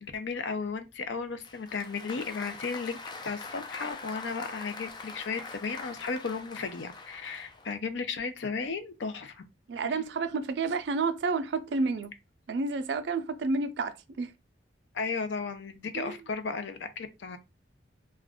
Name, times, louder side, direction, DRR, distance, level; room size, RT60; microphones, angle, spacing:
voice 1, 0.0-3.0 3.2-9.4 9.8-10.0 14.9-17.4, left 4 dB, 85° left, 0.5 m, -35 dB
Applause, 1.4-7.8, left 3 dB, 25° left, 0.3 m, -44 dB
voice 2, 9.7-12.1 12.5-14.3 15.9-16.2, right 4 dB, 70° right, 0.4 m, -30 dB
2.4 x 2.2 x 3.5 m
head